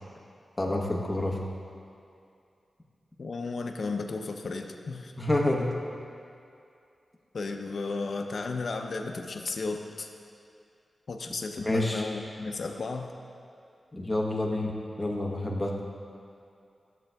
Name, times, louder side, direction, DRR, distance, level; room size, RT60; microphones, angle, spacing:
voice 1, 0.6-1.4 5.2-5.7 11.6-12.1 13.9-14.7 15.0-15.8, left 1 dB, 15° left, -1 dB, 1.0 m, -28 dB
voice 2, 3.2-5.1 7.3-10.1 11.1-13.1, left 3 dB, 60° left, 4 dB, 0.5 m, -34 dB
13.0 x 7.6 x 2.3 m, 2.5 s
wide cardioid pair, 110°, 0 cm